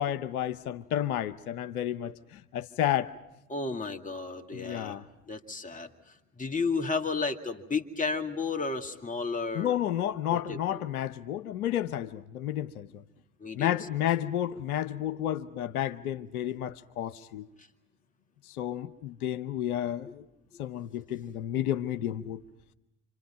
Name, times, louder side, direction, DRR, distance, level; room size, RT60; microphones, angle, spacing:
voice 1, 0.0-3.1 4.5-5.0 9.5-13.0 13.6-17.5 18.5-20.2 20.6-22.4, left 11 dB, 85° left, 12 dB, 0.8 m, -31 dB
voice 2, 3.5-5.0 5.3-5.9 6.4-9.8 10.3-10.8 13.4-13.8, left 4 dB, 20° left, 4 dB, 2.3 m, -32 dB
28.5 x 26.5 x 5.8 m, 0.91 s
hypercardioid pair, 70°, 43 cm